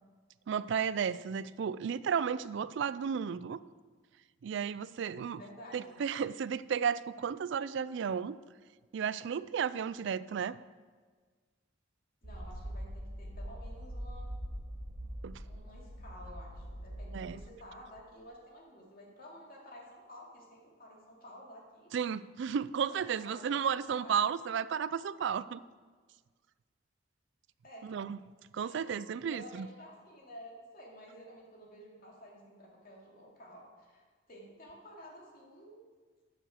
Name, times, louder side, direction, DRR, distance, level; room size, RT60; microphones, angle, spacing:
voice 1, 0.5-3.6 4.4-5.4 5.7-8.4 8.9-10.6 15.2-15.4 17.1-17.4 21.9-25.6 27.8-28.2 28.5-29.7, right 7 dB, 60° right, 17 dB, 0.3 m, -33 dB
voice 2, 5.1-6.0 12.2-14.3 15.4-21.9 22.9-23.5 23.9-24.4 27.6-27.9 28.6-35.8, equal, 45° left, -2 dB, 2.5 m, -52 dB
sound 1, 12.2-17.6, equal, 85° right, 1.4 m, -43 dB
8.9 x 6.9 x 6.4 m, 1.5 s
head